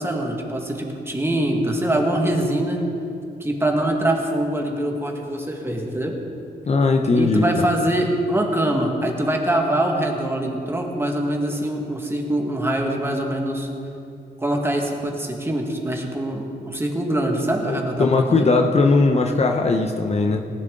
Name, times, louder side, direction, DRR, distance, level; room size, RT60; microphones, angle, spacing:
voice 1, 0.0-2.8 3.4-6.1 7.1-13.7 14.4-18.5, right 1 dB, 15° right, 1 dB, 1.7 m, -23 dB
voice 2, 6.7-7.6 17.6-20.4, left 3 dB, 40° left, 3 dB, 0.8 m, -19 dB
18.5 x 10.5 x 3.9 m, 2.7 s
cardioid pair, 90°, 17 cm